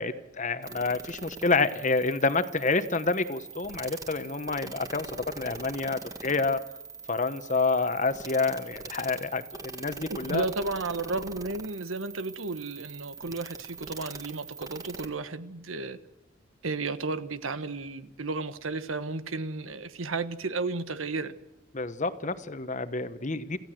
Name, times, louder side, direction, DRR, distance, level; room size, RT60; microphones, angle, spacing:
voice 1, 0.0-6.6 7.1-10.4 21.7-23.6, left 3 dB, 40° left, 12 dB, 1.1 m, -28 dB
sound 1, 0.6-15.1, right 4 dB, 20° right, 1.7 m, -43 dB
voice 2, 10.3-16.0 16.6-21.4, right 3 dB, 90° right, 12 dB, 1.3 m, -33 dB
28.0 x 15.5 x 7.8 m, 0.98 s
head